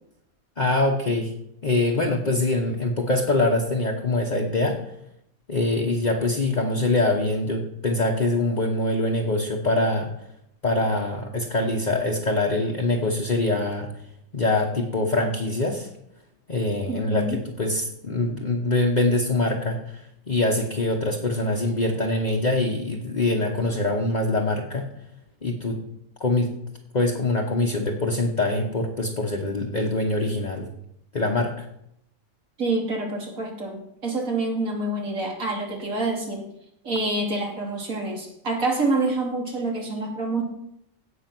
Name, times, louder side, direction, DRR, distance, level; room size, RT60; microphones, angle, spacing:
voice 1, 0.6-1.3 1.6-4.8 5.5-10.1 10.6-13.9 14.3-15.9 16.5-24.9 25.4-25.8 26.2-26.5 26.9-30.7 31.1-31.6, left 2 dB, 35° left, 0 dB, 1.2 m, -24 dB
voice 2, 16.9-17.4 32.6-36.5 36.8-40.4, right 2 dB, 70° right, 0 dB, 3.0 m, -27 dB
16.5 x 6.3 x 6.1 m, 0.77 s
omnidirectional pair, 1.5 m